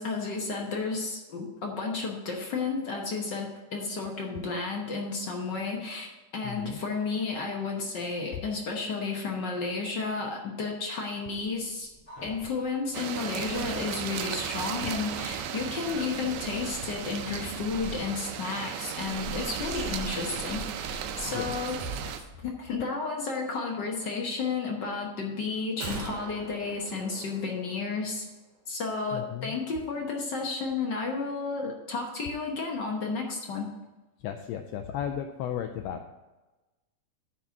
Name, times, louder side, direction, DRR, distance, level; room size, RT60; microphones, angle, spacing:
voice 1, 0.0-11.9 12.2-20.6 21.2-21.8 22.4-28.3 28.7-33.7, left 4 dB, 65° left, 0 dB, 1.0 m, -32 dB
voice 2, 6.4-6.8 21.3-21.4 29.1-29.6 34.2-36.1, left 9 dB, 85° left, 5 dB, 1.5 m, -35 dB
sound 1, 11.4-12.9 13.3-13.4 13.7-13.8 14.4-15.3 15.8-16.9 17.2-17.9 19.0-22.3, right 1 dB, 30° left, 2.4 m, -43 dB
sound 2, 12.9-22.2, right 9 dB, 80° right, 2.0 m, -36 dB
sound 3, 25.8-28.2 28.4-28.5, right 4 dB, 60° right, 1.9 m, -41 dB
9.3 x 4.4 x 7.2 m, 1.1 s
omnidirectional pair, 3.5 m